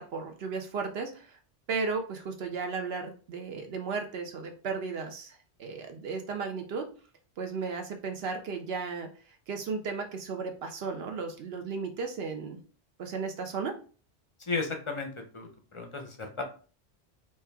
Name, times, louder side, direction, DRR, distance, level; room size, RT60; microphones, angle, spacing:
voice 1, 0.0-1.4 1.7-6.9 7.4-12.6 13.0-13.8, right 4 dB, 70° right, 5 dB, 0.8 m, -35 dB
voice 2, 14.5-16.4, left 4 dB, 40° left, 4 dB, 0.5 m, -34 dB
4.2 x 2.3 x 3.4 m, 0.39 s
omnidirectional pair, 1.1 m